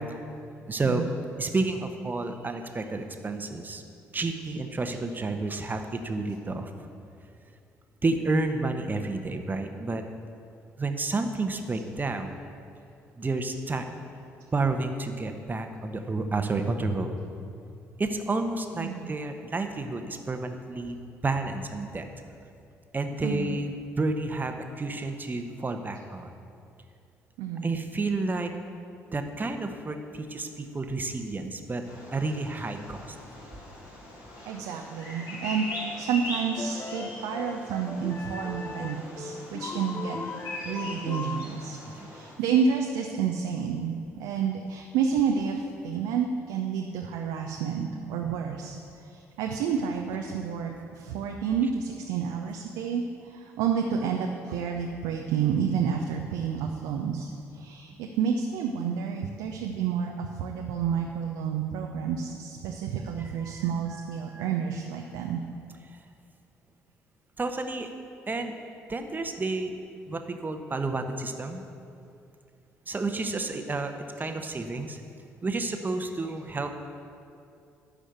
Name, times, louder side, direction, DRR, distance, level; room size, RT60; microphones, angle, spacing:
voice 1, 0.7-1.0 1.4-3.8 4.1-6.7 8.0-10.0 10.8-12.4 13.2-13.8 14.5-17.2 18.0-21.0 21.2-22.1 22.9-26.3 27.6-28.5 29.1-31.8 32.1-33.1 41.9-42.1 63.2-63.6 64.2-64.5 67.4-67.9 68.3-68.6 68.9-69.7 70.1-71.6 72.9-75.0 75.4-76.8, right 3 dB, 25° right, 6 dB, 1.1 m, -30 dB
voice 2, 18.8-19.1 23.2-23.6 27.4-27.7 34.5-35.7 36.0-40.2 40.6-65.4, right 7 dB, 65° right, 2 dB, 0.7 m, -30 dB
Bird vocalization bird call bird song, 31.8-42.3, left 1 dB, 65° left, 2.4 m, -41 dB
sound 1, 35.7-36.1 36.6-41.5, left 4 dB, 25° left, 0.5 m, -38 dB
12.5 x 5.0 x 7.8 m, 2.5 s
figure-of-eight pair, 45°, 7 cm